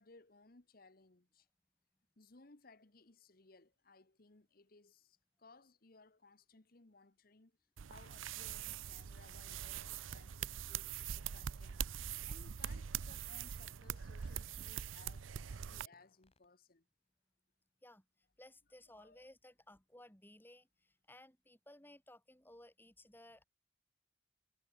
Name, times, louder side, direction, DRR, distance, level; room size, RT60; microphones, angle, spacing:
voice 1, 0.0-1.5 2.2-7.6 7.9-11.8 12.3-16.9 18.9-19.2, left 3 dB, 50° left, 1.3 m, -63 dB
sound 1, 7.8-15.9, right 8 dB, 90° right, 0.6 m, -43 dB
sound 2, 11.7-12.0 12.7-13.3 14.2-15.0 15.3-15.5 15.9-16.5, left 2 dB, 30° left, 2.6 m, -75 dB
voice 2, 17.8-23.4, left 1 dB, 10° left, 4.0 m, -59 dB
head